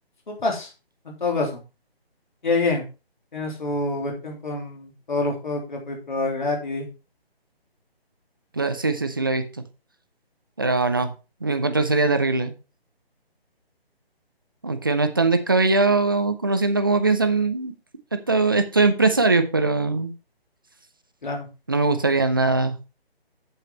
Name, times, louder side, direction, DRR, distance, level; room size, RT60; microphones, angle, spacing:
voice 1, 0.3-0.7 1.1-1.6 2.4-2.8 3.3-6.9 21.2-21.5, left 3 dB, 50° left, 3.5 m, -26 dB
voice 2, 8.5-9.6 10.6-11.1 11.4-12.5 14.6-17.7 18.1-20.1 21.7-22.8, right 3 dB, 20° right, 0.6 m, -21 dB
8.2 x 7.3 x 4.3 m
figure-of-eight pair, 150°, 31 cm